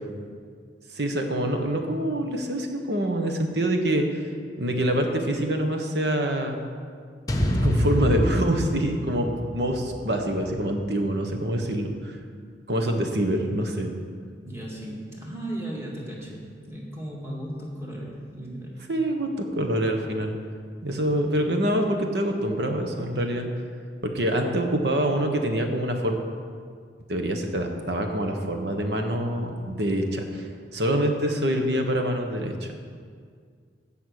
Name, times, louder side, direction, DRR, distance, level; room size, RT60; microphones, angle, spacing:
voice 1, 0.9-4.0 4.6-6.6 7.6-12.2 12.7-13.9 18.9-20.3 20.8-23.5 24.0-26.2 27.1-30.5 30.7-32.7, right 1 dB, 70° right, 4 dB, 1.3 m, -25 dB
sound 1, 7.3-11.5, left 1 dB, 20° left, 0.9 m, -28 dB
voice 2, 14.5-18.8, right 1 dB, 15° right, -4 dB, 2.4 m, -36 dB
16.0 x 5.7 x 6.6 m, 2.1 s
head